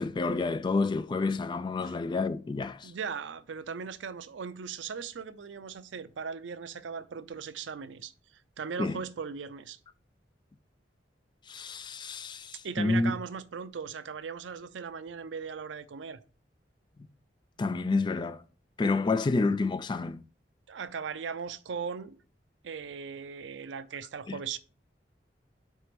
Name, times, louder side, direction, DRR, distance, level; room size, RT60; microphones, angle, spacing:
voice 1, 0.0-2.9 8.8-9.0 11.5-13.1 17.6-18.4 18.8-20.2 24.3-24.4, left 3 dB, 25° left, 0.3 m, -29 dB
voice 2, 2.8-9.8 12.6-16.2 20.7-22.2 22.6-24.6, right 6 dB, 90° right, 0.5 m, -38 dB
4.5 x 4.1 x 5.0 m
head